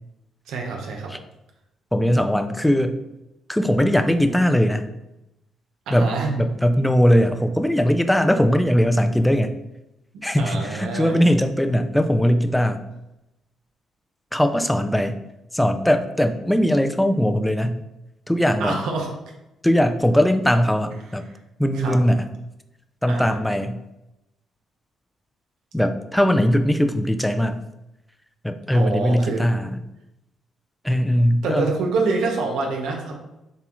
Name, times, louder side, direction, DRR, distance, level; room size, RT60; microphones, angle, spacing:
voice 1, 0.5-1.1 5.9-6.3 10.4-11.2 18.6-19.1 21.7-22.0 23.1-23.3 28.7-29.4 31.4-33.1, right 3 dB, 85° right, 1 dB, 0.9 m, -26 dB
voice 2, 1.9-3.0 3.5-4.9 5.9-9.5 10.2-12.8 14.3-15.2 15.5-17.8 18.3-18.8 19.6-21.3 21.6-22.3 23.0-23.8 25.7-27.6 28.4-29.8 30.8-31.7, equal, 5° left, 8 dB, 0.4 m, -20 dB
6.9 x 2.3 x 3.1 m, 0.90 s
cardioid pair, 90°, 0 cm